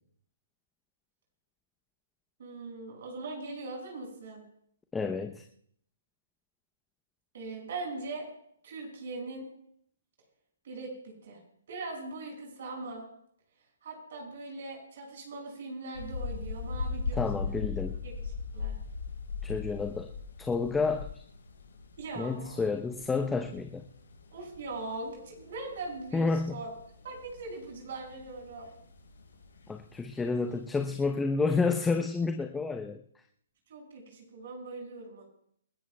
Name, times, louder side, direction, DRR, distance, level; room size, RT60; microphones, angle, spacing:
voice 1, 2.4-4.4 7.3-8.3 8.6-9.5 10.6-11.4 11.7-13.0 13.8-17.6 18.0-18.8 22.0-22.6 24.3-26.7 27.0-28.7 33.7-35.2, right 3 dB, 60° right, 0 dB, 6.3 m, -41 dB
voice 2, 4.9-5.4 17.1-18.0 19.4-20.1 20.4-21.1 22.2-23.8 26.1-26.6 29.7-33.0, left 4 dB, 10° left, 6 dB, 0.8 m, -30 dB
sound 1, 15.9-30.7, left 5 dB, 80° left, 5.1 m, -40 dB
28.5 x 13.5 x 2.3 m, 0.67 s
figure-of-eight pair, 130°, 0 cm